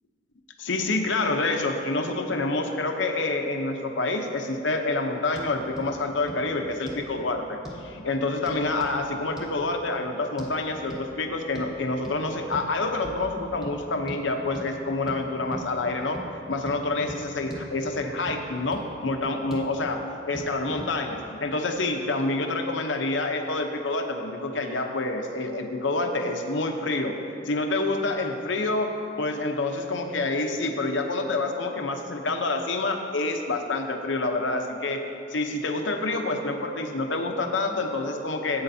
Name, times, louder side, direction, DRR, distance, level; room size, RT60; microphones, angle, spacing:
voice 1, 0.6-16.2 16.5-27.2 27.4-35.0 35.3-38.6, left 2 dB, 75° left, 4 dB, 0.8 m, -27 dB
sound 1, 5.3-5.5 5.8-5.9 6.3-6.4 6.9-7.1 7.6-7.8 8.5-9.0 9.4-9.5 10.4-10.5 10.9-11.0 11.5-11.7 12.0-12.2 12.5-12.7 13.0-13.2 13.6-13.7 14.1-14.2 14.5-14.7 15.1-15.2 15.5-15.7 16.1-16.3 16.7-16.8 17.1-17.2 17.5-17.6 17.9-18.4 18.7-18.8 19.2-19.7 20.3-20.5 20.8-20.9, equal, ahead, 1.3 m, -39 dB
15.0 x 8.6 x 2.8 m, 2.7 s
head